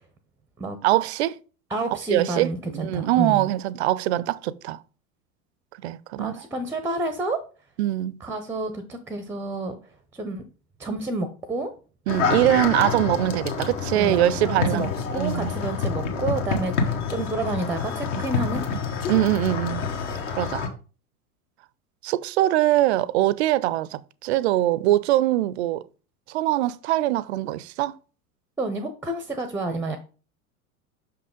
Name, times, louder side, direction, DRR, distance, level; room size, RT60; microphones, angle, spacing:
voice 1, 0.8-1.4 2.1-4.8 5.8-6.4 7.8-8.2 12.1-14.9 15.1-15.5 19.1-19.8 20.4-20.6 22.0-25.9 26.3-28.0, right 14 dB, 50° right, 0.5 m, -23 dB
voice 2, 1.7-3.5 6.2-7.4 8.2-9.8 10.1-10.4 10.8-11.7 13.9-14.2 14.4-18.7 28.6-30.0, right 2 dB, 5° right, 0.6 m, -29 dB
sound 1, 12.1-20.7, left 5 dB, 55° left, 1.5 m, -27 dB
6.0 x 5.7 x 3.6 m
figure-of-eight pair, 80°, 43 cm